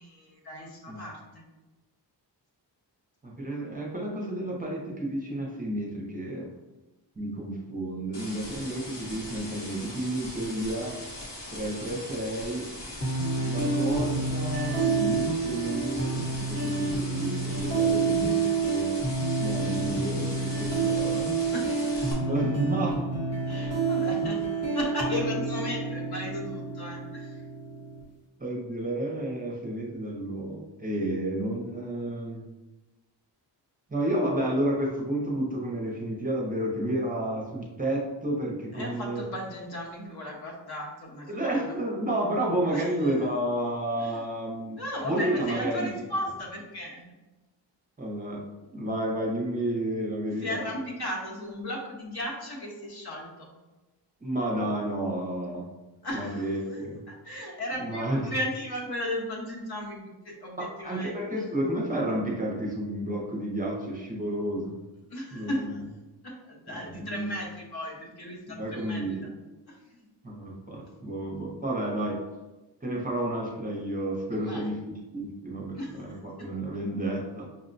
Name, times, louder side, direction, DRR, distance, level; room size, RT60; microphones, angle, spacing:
voice 1, 0.0-1.4 21.5-22.3 23.5-27.4 38.7-41.8 42.7-43.3 44.0-44.2 44.8-47.0 50.4-53.5 56.0-61.1 65.1-65.8 66.2-69.3 69.7-70.1 74.3-74.7 75.8-76.2, left 1 dB, 60° left, -2 dB, 1.0 m, -36 dB
voice 2, 3.2-6.5 7.2-11.0 11.5-12.7 13.5-18.9 19.4-21.3 22.3-23.0 28.4-32.5 33.9-39.2 41.3-45.9 48.0-48.4 48.7-50.7 54.2-55.6 56.1-57.0 57.8-58.3 60.6-64.7 65.3-65.6 66.7-67.3 68.5-69.3 70.2-72.2 72.8-77.5, right 1 dB, 20° right, -3 dB, 0.5 m, -31 dB
sound 1, 8.1-22.1, left 1 dB, 75° left, 1.3 m, -41 dB
sound 2, 13.0-28.0, right 4 dB, 35° left, 0.9 m, -28 dB
5.7 x 2.1 x 2.5 m, 1.1 s
wide cardioid pair, 150°, 44 cm